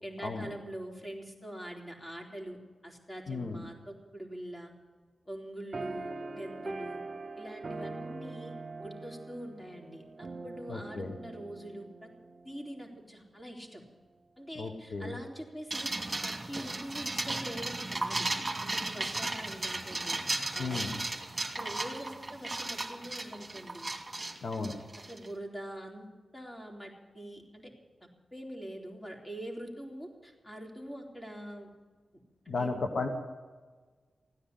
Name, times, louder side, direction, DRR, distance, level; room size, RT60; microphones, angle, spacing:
voice 1, 0.0-4.7 5.3-7.0 7.4-12.1 12.4-13.8 14.4-15.9 16.2-18.3 18.6-20.2 20.5-20.9 21.5-23.9 25.1-26.1 26.3-27.7 28.3-31.7 32.5-32.7, equal, 20° left, 1 dB, 3.7 m, -44 dB
voice 2, 3.3-3.6 10.7-11.1 14.6-15.1 20.6-21.0 24.4-24.7 32.5-33.1, left 3 dB, 70° left, 4 dB, 1.4 m, -34 dB
sound 1, 5.7-12.6, right 3 dB, 55° right, 0.8 m, -43 dB
sound 2, 15.7-25.3, right 2 dB, 25° right, 2.6 m, -35 dB
16.0 x 10.0 x 8.4 m, 1.4 s
cardioid pair, 55°, 0 cm